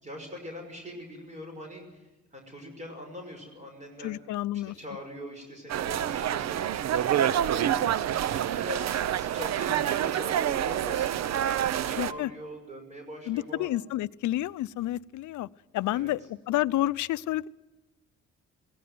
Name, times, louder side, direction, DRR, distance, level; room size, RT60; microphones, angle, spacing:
voice 1, 0.0-4.1 4.6-13.7 15.9-16.1, equal, 25° right, 3 dB, 5.8 m, -42 dB
voice 2, 4.0-4.8 12.0-12.3 13.3-15.5 15.7-17.5, left 15 dB, 75° left, 19 dB, 0.6 m, -30 dB
sound 1, 5.7-12.1, right 10 dB, 60° right, 0.7 m, -27 dB
17.0 x 17.0 x 9.5 m, 1.1 s
cardioid pair, 90°, 30 cm